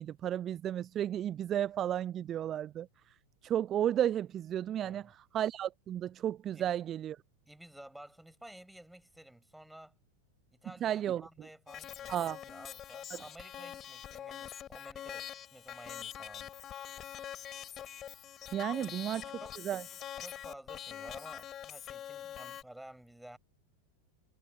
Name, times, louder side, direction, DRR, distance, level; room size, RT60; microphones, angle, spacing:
voice 1, 0.0-2.9 3.4-7.2 10.8-11.2 12.1-12.4 13.1-13.2 18.5-19.3 19.6-19.8, right 11 dB, 30° right, 0.4 m, -33 dB
voice 2, 7.5-9.9 10.5-16.5 18.7-19.5 19.9-23.4, right 1 dB, 5° right, 4.5 m, -53 dB
sound 1, 11.7-22.6, left 10 dB, 30° left, 5.1 m, -44 dB
figure-of-eight pair, 90°, 0 cm